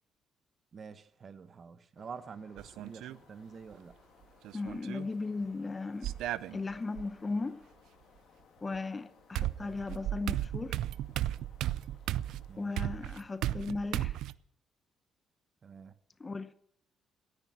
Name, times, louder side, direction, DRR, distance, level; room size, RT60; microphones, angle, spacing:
voice 1, 0.7-4.0 9.6-9.8 12.5-12.7 15.6-15.9, right 6 dB, 45° right, 1.2 m, -48 dB
sound 1, 2.0-12.8, left 7 dB, 65° left, 2.2 m, -63 dB
sound 2, 2.3-7.7, equal, 5° right, 5.3 m, -69 dB
sound 3, 2.6-3.2 4.4-5.1 6.0-7.0 8.7-8.8 9.3-14.3, right 13 dB, 85° right, 0.5 m, -35 dB
voice 2, 4.5-6.2 6.5-7.6 8.6-10.8 12.6-14.2 16.2-16.5, left 3 dB, 25° left, 0.7 m, -37 dB
16.5 x 10.0 x 7.6 m
cardioid pair, 90°, 0 cm